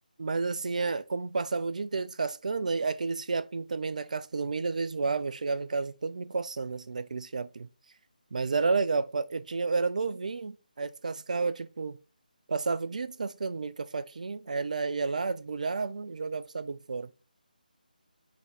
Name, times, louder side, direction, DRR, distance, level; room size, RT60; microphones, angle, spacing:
voice 1, 0.2-7.7 8.3-12.0 12.5-17.1, right 4 dB, 55° right, 0.4 m, -31 dB
4.1 x 3.6 x 3.2 m
figure-of-eight pair, 155°, 5 cm